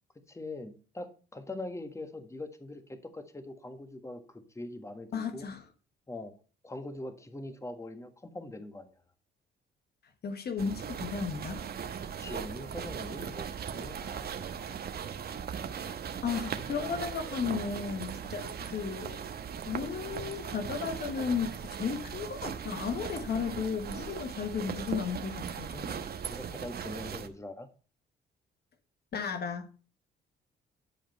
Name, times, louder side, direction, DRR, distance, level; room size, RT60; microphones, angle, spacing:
voice 1, 0.3-5.5 6.1-6.3 6.6-8.9 12.0-13.5 13.7-14.5 15.5-15.8 26.3-27.7, left 2 dB, 15° left, 1.5 m, -42 dB
voice 2, 5.1-5.6 10.2-11.6 16.2-19.2 19.7-26.0 29.1-29.7, left 6 dB, 55° left, 1.3 m, -34 dB
sound 1, 10.6-27.3, right 7 dB, 50° right, 1.1 m, -39 dB
11.0 x 5.1 x 5.4 m
cardioid pair, 90°, 20 cm